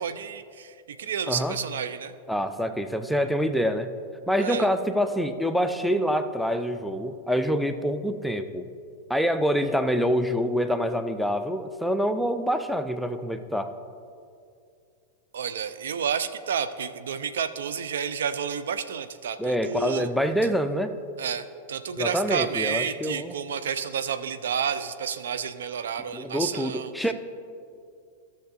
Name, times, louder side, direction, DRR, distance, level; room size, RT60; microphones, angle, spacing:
voice 1, 0.0-2.1 4.4-4.7 15.3-20.1 21.2-26.9, right 7 dB, 65° right, 11 dB, 0.4 m, -30 dB
voice 2, 2.3-3.9 4.3-8.7 9.1-13.7 19.4-20.9 22.0-23.3 26.1-27.1, equal, ahead, 8 dB, 0.5 m, -26 dB
15.0 x 6.4 x 2.6 m, 2.3 s
figure-of-eight pair, 90°, 0 cm